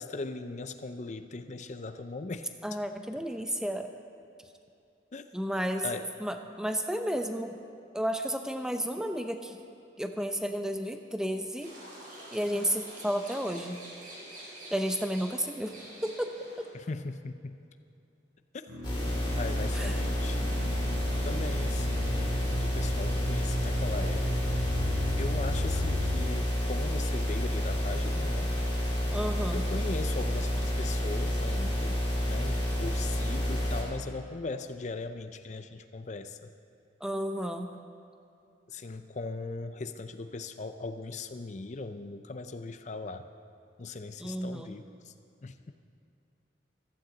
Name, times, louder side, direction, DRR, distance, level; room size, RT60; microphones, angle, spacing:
voice 1, 0.0-2.5 5.1-5.2 5.8-6.1 16.7-17.6 19.4-20.5 21.2-24.6 25.2-28.5 29.5-32.0 32.3-36.5 38.7-43.3 43.8-45.1 45.4-45.7, left 3 dB, 40° left, 9 dB, 0.5 m, -39 dB
voice 2, 2.6-3.9 5.3-7.6 7.9-9.6 10.0-11.7 12.3-13.8 14.7-15.7 16.0-16.6 19.7-20.0 29.1-29.6 37.0-37.7 44.2-44.7, equal, 5° right, 6 dB, 0.6 m, -32 dB
sound 1, 11.6-16.7, right 1 dB, 45° right, 4.0 m, -47 dB
sound 2, 18.7-26.2, left 1 dB, 85° right, 3.7 m, -36 dB
sound 3, 18.8-33.8, equal, 20° left, 3.3 m, -29 dB
15.0 x 14.5 x 3.9 m, 2.7 s
head